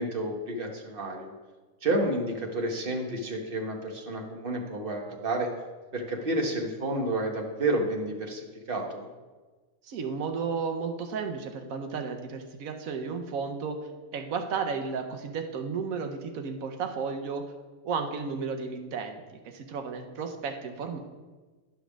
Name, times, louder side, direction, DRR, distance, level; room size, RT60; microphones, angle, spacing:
voice 1, 0.0-1.3 1.8-5.5 5.9-9.1, right 1 dB, 45° right, 2 dB, 1.2 m, -30 dB
voice 2, 9.9-13.8 14.1-17.4 17.8-21.0, right 5 dB, 80° right, 5 dB, 1.1 m, -33 dB
10.0 x 3.4 x 6.2 m, 1.3 s
omnidirectional pair, 1.5 m